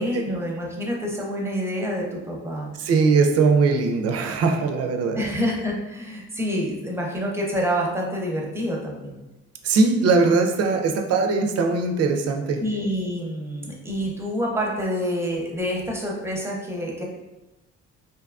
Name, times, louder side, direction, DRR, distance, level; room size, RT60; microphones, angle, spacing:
voice 1, 0.0-2.7 5.2-9.1 12.6-17.0, equal, 10° right, -1 dB, 0.6 m, -27 dB
voice 2, 2.8-5.3 9.6-12.6, right 4 dB, 55° right, 4 dB, 0.4 m, -20 dB
2.7 x 2.3 x 2.4 m, 1.0 s
cardioid pair, 90°, 30 cm